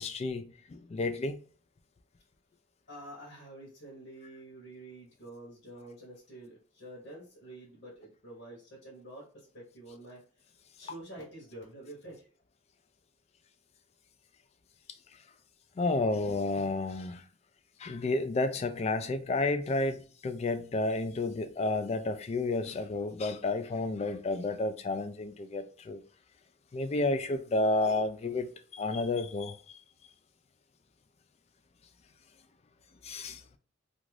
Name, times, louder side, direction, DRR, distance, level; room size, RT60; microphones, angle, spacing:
voice 1, 0.0-1.4 15.8-17.2 17.8-26.0 26.7-29.8 33.0-33.4, left 2 dB, 35° left, 0.3 m, -31 dB
voice 2, 2.9-10.2 10.8-12.3, right 1 dB, 70° left, 1.0 m, -48 dB
2.5 x 2.4 x 3.1 m
head